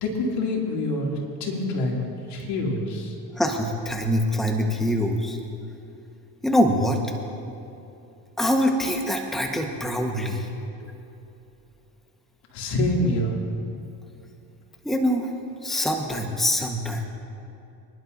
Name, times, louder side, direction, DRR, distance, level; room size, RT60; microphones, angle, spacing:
voice 1, 0.0-3.2 10.4-10.5 12.5-13.4, left 1 dB, 70° left, -1 dB, 2.7 m, -26 dB
voice 2, 3.3-5.4 6.4-7.0 8.4-10.5 10.8-10.9 14.8-15.3 15.6-17.0, equal, ahead, 2 dB, 1.3 m, -24 dB
25.5 x 11.0 x 2.7 m, 2.8 s
supercardioid pair, 95°, 42 cm